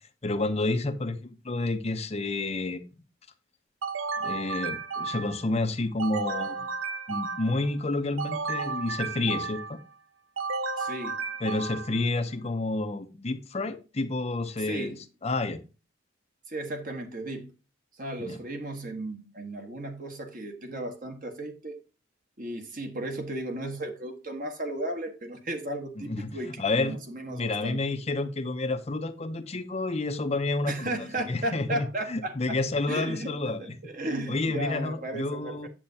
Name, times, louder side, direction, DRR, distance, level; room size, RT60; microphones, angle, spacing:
voice 1, 0.2-2.8 4.2-6.7 7.1-9.8 11.4-15.0 15.2-15.6 18.2-18.4 26.0-27.0 27.3-33.7 34.3-35.7, left 2 dB, 30° left, 0.7 m, -30 dB
sound 1, 3.8-5.5 6.0-7.7 8.2-9.8 10.4-12.1, right 4 dB, 90° right, 0.8 m, -33 dB
voice 2, 10.8-11.2 14.7-14.9 16.5-17.5 17.9-21.8 22.4-27.8 30.6-32.6 32.9-35.7, right 1 dB, 45° right, 1.4 m, -35 dB
8.6 x 7.7 x 2.8 m
head